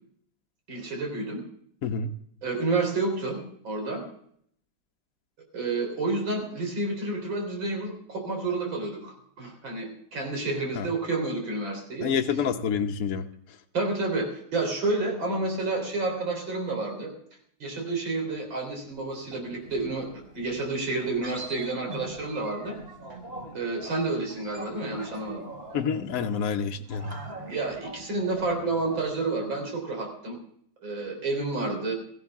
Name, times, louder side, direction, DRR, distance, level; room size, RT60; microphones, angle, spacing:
voice 1, 0.7-1.4 2.4-3.4 3.6-4.0 5.5-12.1 13.7-17.1 17.6-22.8 23.5-25.4 27.5-30.4 30.8-31.9, right 3 dB, 85° right, 2 dB, 4.3 m, -30 dB
voice 2, 1.8-2.1 10.7-10.9 12.0-13.3 25.7-27.2, left 6 dB, 60° left, 4 dB, 1.1 m, -28 dB
sound 1, 18.3-29.1, right 1 dB, 35° right, 2.0 m, -43 dB
17.0 x 14.5 x 3.6 m, 0.66 s
omnidirectional pair, 2.0 m